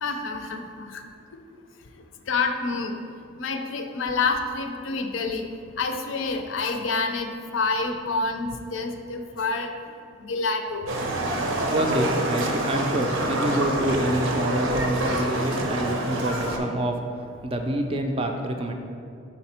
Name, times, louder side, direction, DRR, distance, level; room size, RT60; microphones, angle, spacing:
voice 1, 0.0-1.0 2.3-3.0 3.4-5.4 5.8-9.7 10.2-10.9, left 4 dB, 70° left, 5 dB, 0.5 m, -28 dB
Livestock farm animals working animals, 10.9-16.6, right 1 dB, 75° right, 0.7 m, -26 dB
voice 2, 11.7-17.0 17.4-18.7, right 1 dB, 30° right, 4 dB, 0.4 m, -27 dB
5.4 x 4.2 x 4.3 m, 2.4 s
head